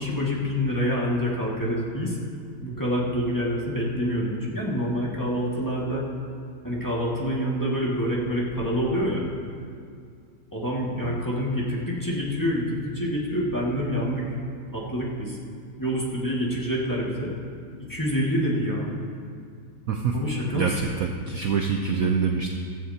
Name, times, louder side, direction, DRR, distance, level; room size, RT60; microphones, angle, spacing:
voice 1, 0.0-2.2 2.6-6.0 6.6-9.2 10.5-14.2 14.7-15.4 15.8-17.3 17.9-18.9 20.1-20.8, equal, 10° left, -5 dB, 1.7 m, -26 dB
voice 2, 19.9-20.2 20.5-22.5, right 5 dB, 70° right, 3 dB, 0.8 m, -25 dB
15.0 x 15.0 x 2.8 m, 2.3 s
omnidirectional pair, 2.3 m